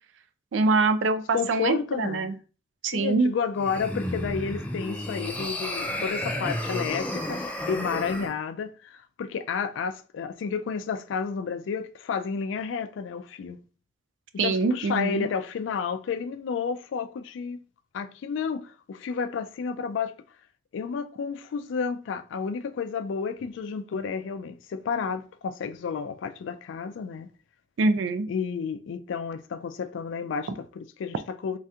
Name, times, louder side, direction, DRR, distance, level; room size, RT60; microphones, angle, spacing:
voice 1, 0.5-2.3 2.8-3.3 14.4-15.3 27.8-28.3, right 3 dB, 80° right, 0.4 m, -24 dB
voice 2, 1.3-2.3 2.9-7.4 7.7-13.6 14.3-17.6 17.9-20.1 20.7-27.3 28.3-31.6, left 6 dB, 85° left, 0.3 m, -31 dB
sound 1, 3.6-8.3, left 1 dB, 10° left, 0.3 m, -32 dB
3.2 x 2.8 x 2.3 m
head